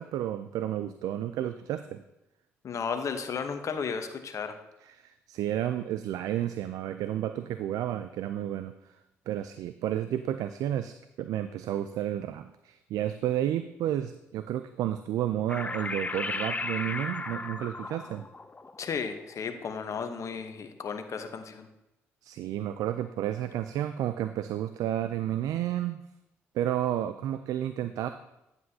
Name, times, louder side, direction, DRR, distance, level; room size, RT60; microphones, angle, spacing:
voice 1, 0.0-2.0 4.8-8.9 9.3-18.2 22.2-26.0 26.5-28.1, right 11 dB, 70° right, 11 dB, 0.3 m, -31 dB
voice 2, 2.6-4.6 18.8-21.7, left 6 dB, 55° left, 7 dB, 0.9 m, -34 dB
sound 1, 15.5-20.3, left 3 dB, 25° left, 0.5 m, -36 dB
9.5 x 7.9 x 2.8 m, 0.92 s
hypercardioid pair, 50°, 6 cm